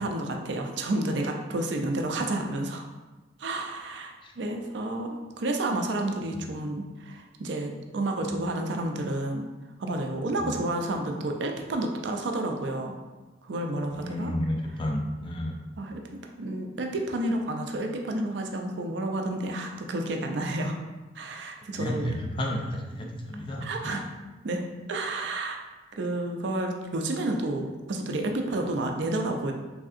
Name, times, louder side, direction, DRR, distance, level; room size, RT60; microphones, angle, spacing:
voice 1, 0.0-2.9 3.4-9.5 9.8-12.9 13.4-14.3 15.8-16.0 16.4-20.8 21.2-22.1 23.6-24.0 24.4-24.6 24.9-25.6 26.0-29.5, right 1 dB, 65° right, 3 dB, 0.4 m, -30 dB
voice 2, 13.9-15.6 21.8-24.0, left 1 dB, 25° left, 1 dB, 0.4 m, -32 dB
3.6 x 3.4 x 2.4 m, 1.2 s
head